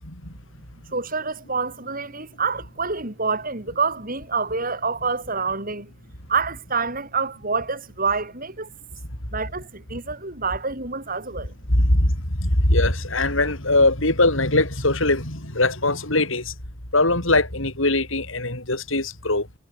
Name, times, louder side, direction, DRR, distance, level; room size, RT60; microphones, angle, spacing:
voice 1, 0.9-5.9 6.3-8.7 9.3-11.5, right 4 dB, 45° right, 5.9 m, -27 dB
voice 2, 11.7-12.1 12.4-16.5 16.9-19.5, left 2 dB, 70° left, 7.2 m, -21 dB
head